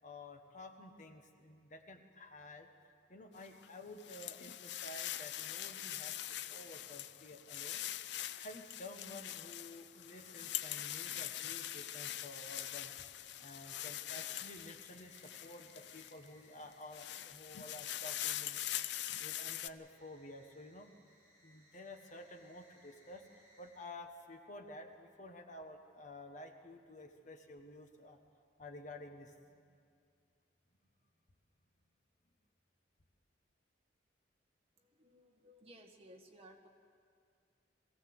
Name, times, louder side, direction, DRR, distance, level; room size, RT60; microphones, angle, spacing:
voice 1, 0.0-2.7 3.1-7.8 8.3-18.6 18.9-20.9 21.4-23.3 23.6-28.2 28.6-29.6, left 1 dB, 40° left, 5 dB, 1.4 m, -52 dB
sound 1, 3.4-16.3 16.7-19.7, left 12 dB, 65° left, 0.5 m, -43 dB
sound 2, 7.7-23.7, equal, 15° right, 7.0 m, -70 dB
voice 2, 34.8-36.7, right 1 dB, 30° right, 2 dB, 1.7 m, -59 dB
23.0 x 16.5 x 7.9 m, 2.3 s
head